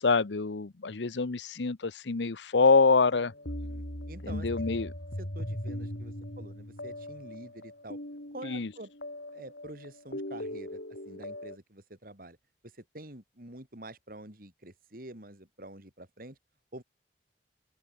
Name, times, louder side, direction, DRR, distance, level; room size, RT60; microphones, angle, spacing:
voice 1, 0.0-3.3 4.2-4.9 8.4-8.7, left 4 dB, 90° left, 0.8 m, -25 dB
sound 1, 3.0-11.6, left 1 dB, 70° left, 7.3 m, -39 dB
voice 2, 3.6-4.8 5.2-8.0 8.3-8.9 9.3-12.4 12.6-16.4 16.7-16.8, right 1 dB, 55° right, 4.6 m, -47 dB
open air
head